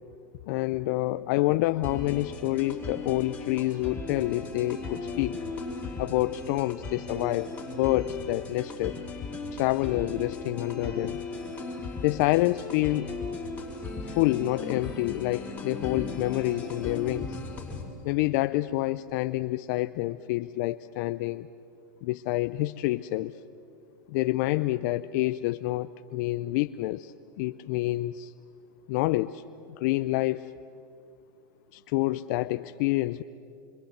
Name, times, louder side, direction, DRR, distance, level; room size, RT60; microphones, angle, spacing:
voice 1, 0.5-5.4 6.0-8.9 9.5-11.2 12.0-13.1 14.0-17.4 18.0-21.5 22.0-23.3 24.1-28.3 28.9-29.4 29.8-30.5 31.7-33.2, left 18 dB, 55° left, 12 dB, 0.6 m, -28 dB
sound 1, 1.8-17.8, left 3 dB, 15° left, 4.9 m, -37 dB
26.5 x 24.5 x 8.0 m, 2.6 s
hypercardioid pair, 120°, 11 cm